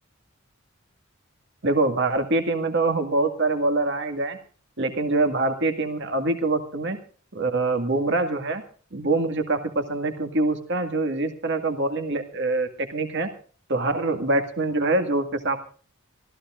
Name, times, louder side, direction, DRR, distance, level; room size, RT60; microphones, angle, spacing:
voice 1, 1.6-4.4 4.8-7.0 7.3-8.6 8.9-13.3 13.7-15.6, right 2 dB, 60° right, 6 dB, 2.0 m, -24 dB
25.0 x 15.0 x 2.5 m, 0.41 s
head